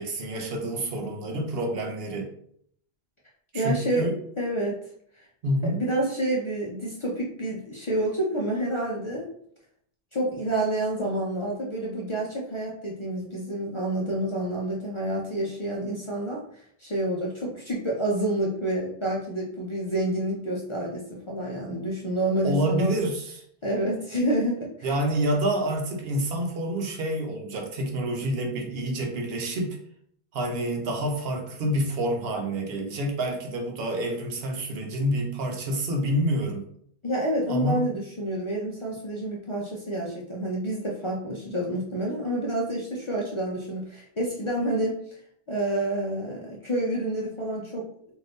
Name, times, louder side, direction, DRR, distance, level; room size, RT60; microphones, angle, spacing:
voice 1, 0.0-2.3 3.5-4.1 5.4-5.8 22.4-23.4 24.8-29.8 30.3-36.6 37.5-37.8, right 1 dB, 70° right, 2 dB, 0.9 m, -28 dB
voice 2, 3.5-4.1 4.4-4.8 5.2-5.3 5.6-9.3 10.1-22.9 23.6-24.9 37.0-45.2 45.5-47.9, right 1 dB, 40° left, -3 dB, 0.5 m, -28 dB
2.6 x 2.6 x 3.4 m, 0.65 s
omnidirectional pair, 1.1 m